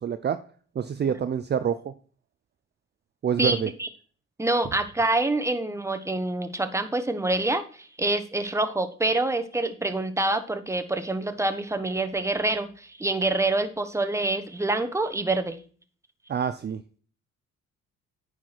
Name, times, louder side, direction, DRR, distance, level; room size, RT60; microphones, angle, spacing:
voice 1, 0.0-0.4 0.8-1.9 3.2-3.7 16.3-16.8, right 8 dB, 35° right, 11 dB, 0.5 m, -26 dB
voice 2, 3.4-3.9 4.4-15.6, right 2 dB, 10° right, 8 dB, 1.1 m, -26 dB
9.2 x 4.8 x 5.8 m, 0.43 s
cardioid pair, 90°, 30 cm